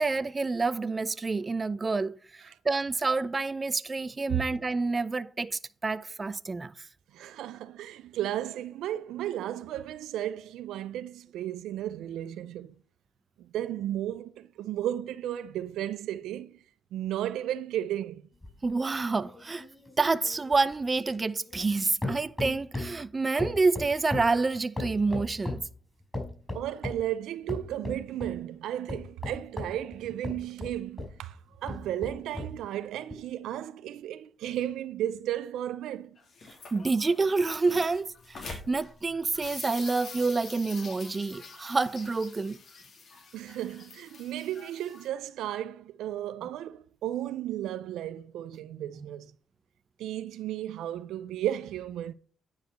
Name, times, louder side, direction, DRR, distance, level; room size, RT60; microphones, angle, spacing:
voice 1, 0.0-2.2 2.6-6.7 18.6-19.6 20.0-25.6 36.7-42.6, right 3 dB, 30° right, 0.6 m, -28 dB
voice 2, 7.1-12.7 13.4-16.6 16.9-18.2 26.5-36.1 43.3-49.3 50.0-52.1, right 12 dB, 85° right, 0.5 m, -34 dB
sound 1, 18.4-21.8 22.0-23.0 23.4-25.7 26.1-27.1 27.5-28.4 28.9-31.2 31.6-32.6 33.1-33.2, left 2 dB, 15° left, 5.3 m, -37 dB
sound 2, 36.2-45.1, left 4 dB, 60° left, 3.0 m, -46 dB
9.7 x 4.8 x 6.7 m
supercardioid pair, 65°, 0 cm